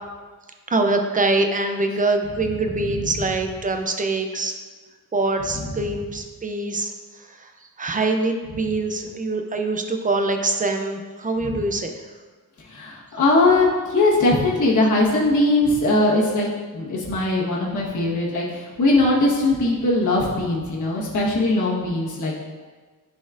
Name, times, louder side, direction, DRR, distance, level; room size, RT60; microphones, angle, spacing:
voice 1, 0.7-4.6 5.1-6.9 7.8-11.9, right 2 dB, 20° right, 5 dB, 0.4 m, -24 dB
voice 2, 12.7-16.5 16.7-22.3, left 2 dB, 50° left, -5 dB, 1.4 m, -20 dB
10.0 x 4.2 x 2.5 m, 1.4 s
wide cardioid pair, 160°, 38 cm